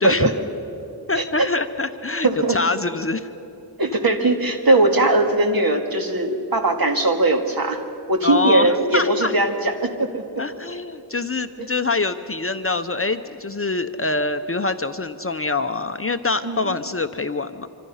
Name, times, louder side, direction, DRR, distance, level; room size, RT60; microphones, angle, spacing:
voice 1, 0.0-0.3 1.2-1.3 2.2-2.6 3.8-7.8 8.1-10.4 16.4-16.8, right 2 dB, 50° right, 4 dB, 2.4 m, -20 dB
voice 2, 1.1-3.3 8.2-9.3 10.4-17.7, left 3 dB, 30° left, 9 dB, 0.7 m, -24 dB
26.0 x 25.5 x 5.7 m, 2.8 s
wide cardioid pair, 115°, 46 cm